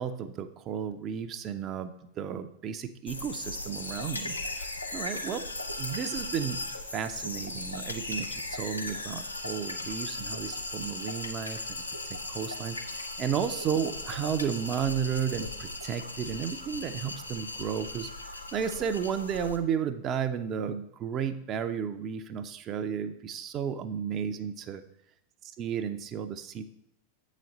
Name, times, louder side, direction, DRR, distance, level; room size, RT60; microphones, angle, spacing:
voice 1, 0.0-5.5 5.8-6.6 6.9-11.8 12.1-24.8 25.4-26.6, right 7 dB, 30° right, 8 dB, 0.5 m, -33 dB
sound 1, 3.1-19.6, left 2 dB, 80° left, 0.7 m, -37 dB
7.6 x 4.1 x 5.1 m, 0.79 s
figure-of-eight pair, 90°, 0 cm